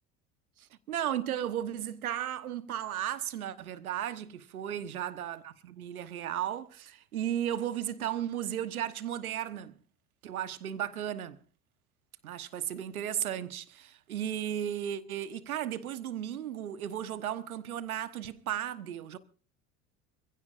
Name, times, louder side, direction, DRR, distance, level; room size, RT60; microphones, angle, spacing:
voice 1, 0.6-9.8 10.2-11.4 12.2-19.2, right 10 dB, 80° right, 1.2 m, -35 dB
27.5 x 16.0 x 2.5 m
figure-of-eight pair, 70°, 43 cm